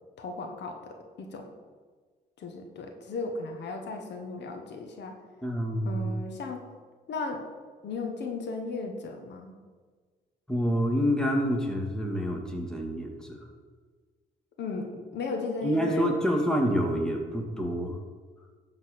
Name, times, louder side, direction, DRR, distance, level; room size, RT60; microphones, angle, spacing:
voice 1, 0.2-1.5 2.4-5.2 5.8-6.6 7.1-7.4 7.8-9.5 14.6-16.1, left 3 dB, 65° left, 3 dB, 1.4 m, -35 dB
voice 2, 5.4-6.1 10.5-13.5 15.6-18.0, equal, 5° left, 0 dB, 2.1 m, -27 dB
11.5 x 4.1 x 6.7 m, 1.5 s
supercardioid pair, 70°, 19 cm